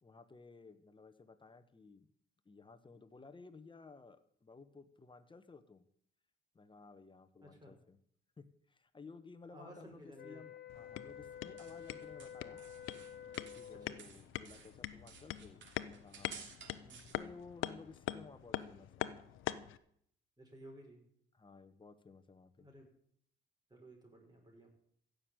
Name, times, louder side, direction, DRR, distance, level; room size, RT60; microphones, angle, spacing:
voice 1, 0.0-2.1 2.4-5.9 6.5-8.0 8.4-12.6 13.2-15.6 15.8-16.5 17.1-19.1 21.3-22.7, left 4 dB, 25° left, 11 dB, 1.4 m, -56 dB
voice 2, 7.4-7.7 9.5-10.4 13.7-13.8 16.8-17.1 20.4-21.0 22.6-22.9 23.7-24.7, equal, 20° right, 0 dB, 6.3 m, -55 dB
sound 1, 10.1-14.1, left 9 dB, 50° left, 2.4 m, -50 dB
sound 2, 10.7-19.8, left 13 dB, 85° left, 0.8 m, -44 dB
sound 3, 11.2-13.7 14.0-17.1, right 6 dB, 70° right, 3.1 m, -55 dB
15.5 x 6.7 x 9.1 m, 0.67 s
cardioid pair, 90°, 20 cm